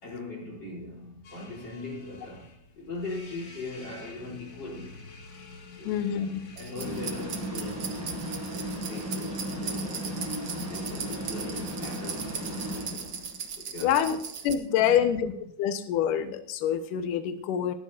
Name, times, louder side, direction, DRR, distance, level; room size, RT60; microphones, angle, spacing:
voice 1, 0.0-5.0 5.8-8.2 8.5-10.3 10.6-13.1 13.6-14.0 14.8-15.1, left 2 dB, 30° left, 4.4 m, -40 dB
sound 1, 1.2-7.3, left 4 dB, 45° left, 1.7 m, -48 dB
voice 2, 5.9-6.3 13.8-14.2 14.4-15.3 15.6-17.7, left 9 dB, 70° left, 2.5 m, -26 dB
sound 2, 6.6-14.5, right 7 dB, 80° right, 1.0 m, -38 dB
sound 3, 6.8-13.4, equal, 5° left, 6.5 m, -35 dB
19.5 x 11.5 x 2.7 m
omnidirectional pair, 4.2 m